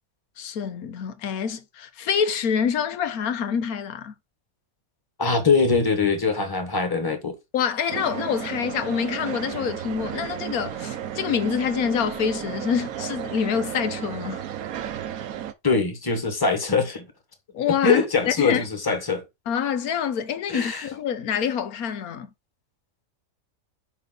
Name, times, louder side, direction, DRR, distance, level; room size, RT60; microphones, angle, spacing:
voice 1, 0.4-4.1 7.5-14.4 17.5-18.6 19.5-22.3, left 7 dB, 90° left, 1.4 m, -26 dB
voice 2, 5.2-7.4 15.6-17.1 17.8-19.2 20.5-20.9, left 4 dB, 15° left, 1.3 m, -22 dB
sound 1, 7.9-15.5, right 10 dB, 80° right, 1.2 m, -33 dB
5.9 x 5.3 x 3.8 m
omnidirectional pair, 1.5 m